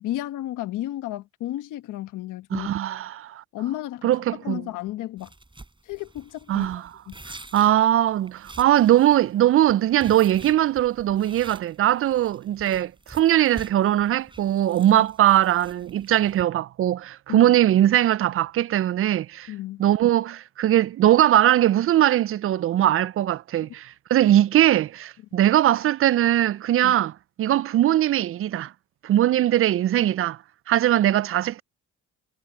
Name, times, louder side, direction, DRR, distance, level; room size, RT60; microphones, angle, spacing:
voice 1, 0.0-2.7 3.5-5.3 5.8-7.1 12.7-12.8 14.9-15.0 17.3-17.6 19.5-19.8 26.8-26.9, left 14 dB, 90° left, 1.3 m, -33 dB
voice 2, 2.5-3.4 4.0-4.6 6.5-6.8 7.5-19.5 19.8-27.1 27.4-28.7 29.0-30.4 30.7-31.6, right 12 dB, 45° right, 0.4 m, -20 dB
sound 1, 5.2-16.4, right 2 dB, 15° right, 5.9 m, -47 dB
cardioid pair, 90°, 30 cm